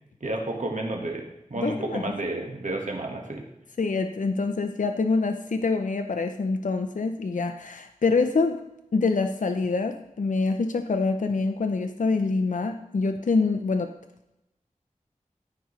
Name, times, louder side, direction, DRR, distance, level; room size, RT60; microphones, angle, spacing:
voice 1, 0.2-1.2 1.5-3.4, right 2 dB, 60° right, 1 dB, 1.5 m, -31 dB
voice 2, 1.6-2.0 3.8-8.6 8.9-13.9, left 4 dB, 65° left, 7 dB, 0.5 m, -25 dB
12.5 x 4.8 x 3.2 m, 0.89 s
wide cardioid pair, 40°, 14 cm